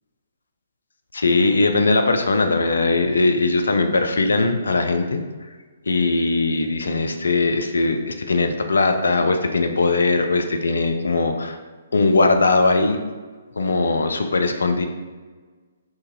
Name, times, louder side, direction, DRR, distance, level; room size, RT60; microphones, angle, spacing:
voice 1, 1.1-5.2 5.9-11.6 11.9-13.0 13.6-14.9, left 3 dB, 70° left, 5 dB, 0.4 m, -20 dB
2.8 x 2.6 x 3.8 m, 1.4 s
figure-of-eight pair, 130°, 0 cm